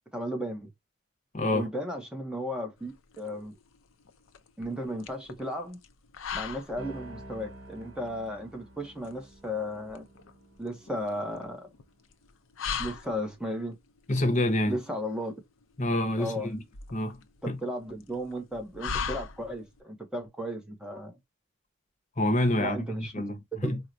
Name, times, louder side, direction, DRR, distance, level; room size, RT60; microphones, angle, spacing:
voice 1, 0.1-0.7 1.5-3.5 4.6-5.8 6.3-10.1 10.6-11.6 12.8-13.8 14.7-15.3 16.2-16.5 17.4-21.1 22.6-23.1 23.6-23.8, equal, 5° right, 0.6 m, -35 dB
voice 2, 1.3-1.7 14.1-14.8 15.8-16.6 16.9-17.2 17.5-17.6 22.2-23.8, left 1 dB, 40° left, 0.8 m, -27 dB
sound 1, 2.8-19.8, left 6 dB, 85° left, 0.5 m, -41 dB
sound 2, 6.8-11.7, right 1 dB, 70° right, 1.3 m, -49 dB
4.4 x 2.0 x 2.5 m
head